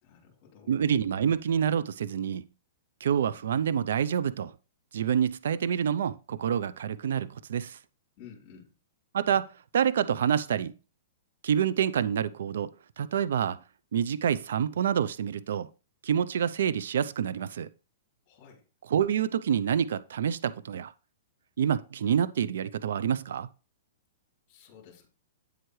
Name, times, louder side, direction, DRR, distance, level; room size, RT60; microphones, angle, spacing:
voice 1, 0.0-0.8 8.2-8.7 18.3-18.6 24.5-25.1, left 7 dB, 35° left, 3.6 m, -52 dB
voice 2, 0.7-2.4 3.0-4.5 4.9-7.8 9.1-10.7 11.4-12.7 13.0-13.6 13.9-15.7 16.0-17.7 18.9-20.9 21.6-23.5, right 8 dB, 75° right, 0.6 m, -27 dB
9.3 x 7.9 x 3.2 m
hypercardioid pair, 140°, 0 cm